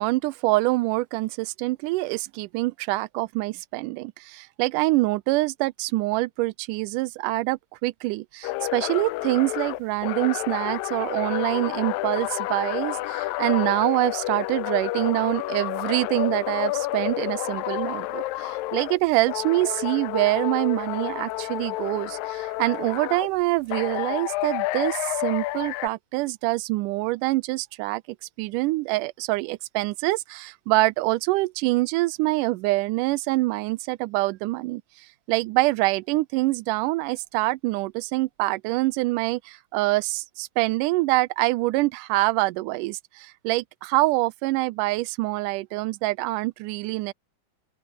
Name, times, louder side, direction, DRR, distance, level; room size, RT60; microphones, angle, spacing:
voice 1, 0.0-28.0 28.4-47.1, right 21 dB, 80° right, 2.0 m, -25 dB
sound 1, 8.4-19.0 19.3-23.3 23.7-25.9, left 18 dB, 85° left, 2.5 m, -30 dB
open air
omnidirectional pair, 4.0 m